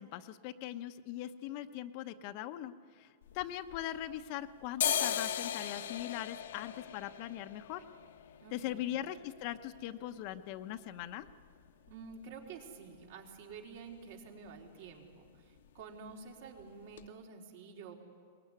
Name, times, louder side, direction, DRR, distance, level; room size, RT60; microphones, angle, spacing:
voice 1, 0.0-3.1 3.3-7.8 8.5-11.3, left 12 dB, 45° left, 9 dB, 0.9 m, -40 dB
sound 1, 3.2-4.3 4.6-12.3 12.6-12.7 13.0-13.6 13.9-14.1 14.4-14.6 14.9-15.6 15.9-16.1 16.6-16.7 17.0-17.1, left 10 dB, 80° left, 1.3 m, -39 dB
voice 2, 8.4-8.9 11.9-17.9, right 5 dB, 60° right, 0 dB, 4.1 m, -50 dB
23.0 x 20.0 x 9.7 m, 2.1 s
hypercardioid pair, 150°, 0 cm